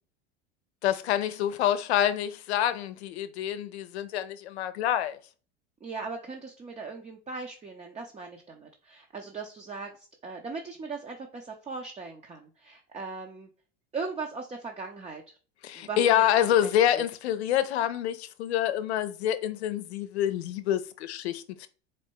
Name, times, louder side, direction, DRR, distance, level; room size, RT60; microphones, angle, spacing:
voice 1, 0.8-5.2 15.6-21.7, left 11 dB, 85° left, 0.6 m, -27 dB
voice 2, 5.8-13.5 13.9-15.4 15.7-17.0, right 4 dB, 20° right, 0.6 m, -39 dB
4.3 x 2.2 x 4.5 m
hypercardioid pair, 100°, 32 cm